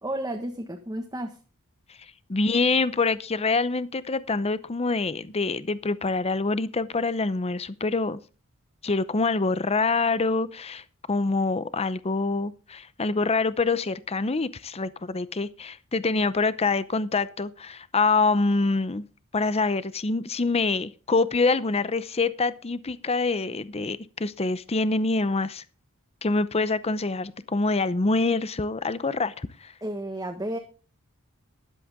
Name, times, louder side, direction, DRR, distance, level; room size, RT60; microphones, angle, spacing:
voice 1, 0.0-1.4 29.8-30.6, right 1 dB, 15° right, 1.5 m, -32 dB
voice 2, 2.3-8.2 8.8-19.0 19.3-25.6 26.2-29.7, left 3 dB, 30° left, 0.7 m, -25 dB
13.5 x 11.5 x 3.7 m
head